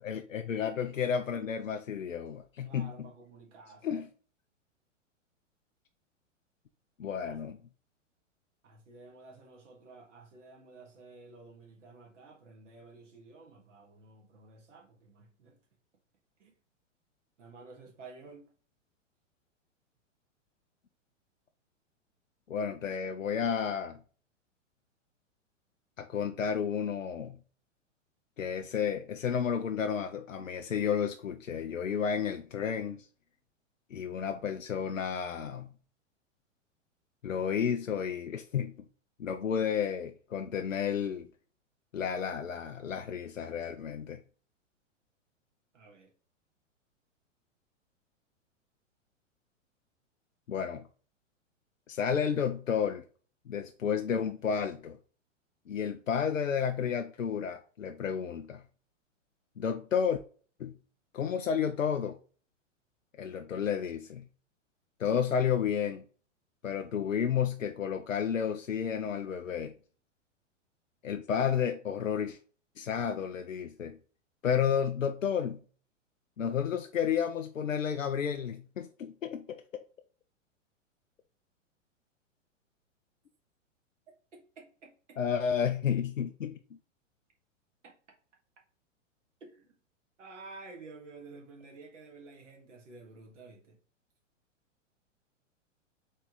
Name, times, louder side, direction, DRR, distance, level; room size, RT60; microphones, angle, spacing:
voice 1, 0.0-3.1 3.8-4.1 7.0-7.6 22.5-24.0 26.0-27.4 28.4-33.0 33.9-35.7 37.2-38.9 39.2-41.3 41.9-44.2 50.5-50.9 51.9-53.0 53.5-55.0 55.7-58.6 59.6-60.2 60.6-60.8 61.1-62.2 63.2-64.3 65.0-66.0 66.6-69.7 71.0-72.4 72.8-74.0 74.4-75.6 76.4-79.8 85.2-86.6, left 7 dB, 85° left, 0.6 m, -31 dB
voice 2, 2.6-4.0 7.2-7.4 8.6-15.6 16.4-16.5 17.4-18.5 45.7-46.1 84.3-85.2 87.8-87.9 89.4-89.7 90.2-93.8, right 3 dB, 70° right, 1.8 m, -52 dB
4.1 x 3.3 x 3.7 m
figure-of-eight pair, 105°, 38 cm